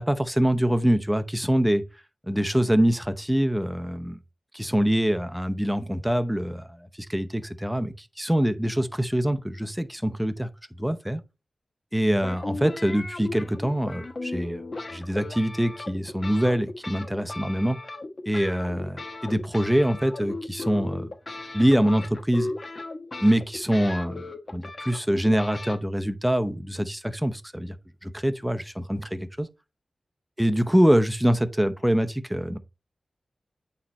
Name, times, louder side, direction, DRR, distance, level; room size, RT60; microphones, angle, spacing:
voice 1, 0.0-1.8 2.3-4.2 4.5-6.7 7.1-10.5 10.8-11.2 11.9-14.6 14.9-17.8 18.3-21.1 21.5-22.5 23.2-24.2 24.5-27.8 28.0-29.5 30.4-32.6, equal, 5° right, 0.7 m, -24 dB
sound 1, 12.2-25.8, left 2 dB, 50° left, 1.0 m, -37 dB
8.6 x 3.2 x 4.1 m
wide cardioid pair, 65°, 0 cm